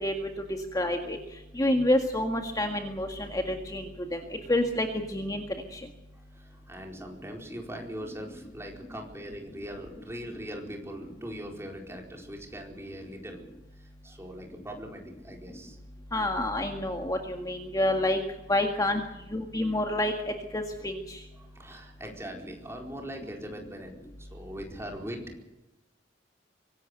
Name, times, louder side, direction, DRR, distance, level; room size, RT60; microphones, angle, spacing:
voice 1, 0.7-1.2 1.6-4.2 4.5-5.4 5.7-5.8 16.1-18.2 18.5-19.0 19.3-20.1 20.5-21.2, left 1 dB, 20° left, 4 dB, 1.8 m, -28 dB
voice 2, 6.1-13.4 13.8-15.8 21.3-25.5, equal, 15° right, 1 dB, 4.4 m, -41 dB
24.5 x 17.5 x 6.8 m, 0.95 s
head